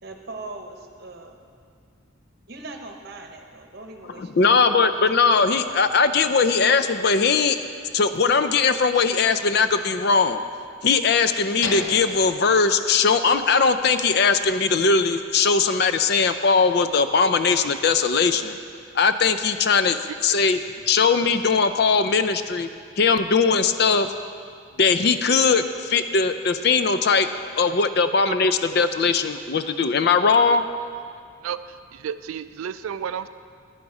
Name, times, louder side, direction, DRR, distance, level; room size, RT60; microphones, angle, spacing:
voice 1, 0.0-1.4 2.5-4.6 4.9-5.0, right 2 dB, 50° right, 4 dB, 1.0 m, -40 dB
voice 2, 4.2-7.6 7.9-10.4 10.8-18.6 18.9-20.0 20.2-20.6 20.9-22.7 23.0-24.1 24.8-27.3 27.6-30.7, left 5 dB, 50° left, 10 dB, 0.4 m, -20 dB
sound 1, 11.6-13.6 13.9-14.0 14.5-14.7, left 4 dB, 80° left, 0.8 m, -35 dB
voice 3, 31.4-33.3, right 8 dB, 85° right, 13 dB, 0.3 m, -32 dB
10.0 x 10.0 x 4.8 m, 2.2 s
head